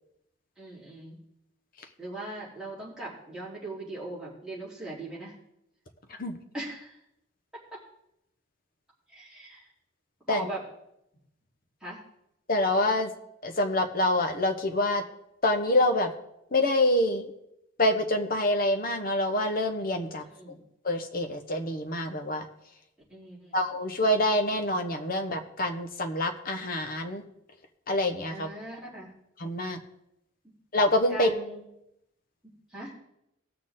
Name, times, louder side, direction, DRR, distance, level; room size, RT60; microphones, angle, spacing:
voice 1, 0.6-1.2 2.0-5.3 6.5-7.0 7.7-7.8 9.1-9.7 10.3-10.6 11.8-12.0 20.2-20.6 23.1-23.6 28.3-29.1 31.1-31.6 32.7-32.9, right 1 dB, 5° right, -9 dB, 3.7 m, -39 dB
voice 2, 12.5-13.1 13.4-15.0 15.4-16.1 16.5-17.2 17.8-20.2 20.8-22.4 23.5-27.2 27.9-28.5 29.4-29.8 30.7-31.3, left 1 dB, 45° left, 5 dB, 1.1 m, -26 dB
18.5 x 6.6 x 3.8 m, 0.81 s
head